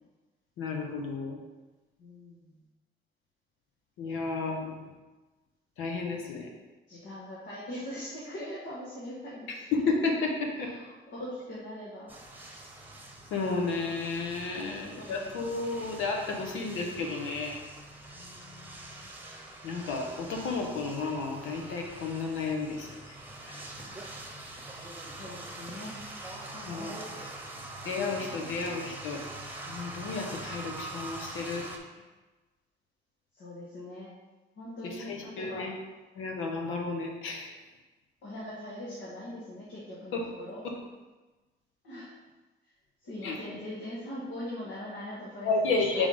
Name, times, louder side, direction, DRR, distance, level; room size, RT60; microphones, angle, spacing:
voice 1, 0.6-1.4 4.0-4.8 5.8-6.5 9.5-10.7 13.3-17.6 19.6-23.1 23.5-23.6 26.7-26.9 27.8-29.2 29.7-31.7 34.8-35.7 36.2-37.5 40.1-40.2 40.6-40.7 43.2-43.4 45.4-46.1, left 3 dB, 90° left, 1 dB, 1.0 m, -32 dB
voice 2, 2.0-2.6 4.0-4.7 6.2-6.3 6.9-9.5 10.5-12.1 14.5-15.5 18.1-19.1 23.8-23.9 25.1-26.0 26.5-27.3 27.9-28.5 33.3-34.1 34.6-35.7 38.2-40.6 41.8-42.1 43.0-46.1, left 1 dB, 70° left, -7 dB, 1.6 m, -42 dB
sound 1, 12.1-31.8, right 2 dB, 10° right, 1.0 m, -44 dB
4.8 x 3.6 x 5.4 m, 1.2 s
cardioid pair, 90°, 20 cm